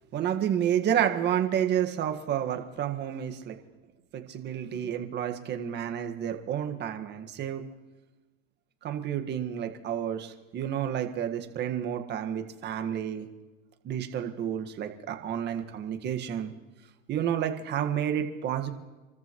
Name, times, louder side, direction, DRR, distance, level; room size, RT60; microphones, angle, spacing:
voice 1, 0.1-3.6 4.1-7.7 8.8-13.3 13.8-16.5 17.1-18.7, right 9 dB, 35° right, 5 dB, 1.7 m, -30 dB
28.0 x 14.0 x 3.1 m, 1.2 s
supercardioid pair, 120°, 29 cm